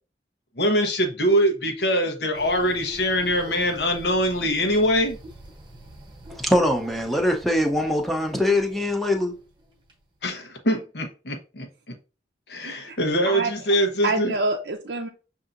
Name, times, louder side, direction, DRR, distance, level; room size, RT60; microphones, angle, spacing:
voice 1, 0.6-5.2 10.2-11.7 12.5-14.3, equal, 75° left, 0.9 m, -23 dB
sound 1, 2.3-10.0, equal, 25° right, 1.0 m, -45 dB
voice 2, 6.4-9.3, left 1 dB, ahead, 0.7 m, -22 dB
voice 3, 12.6-13.0 13.3-13.5 14.0-15.1, right 3 dB, 70° right, 0.6 m, -26 dB
6.7 x 2.8 x 2.5 m
head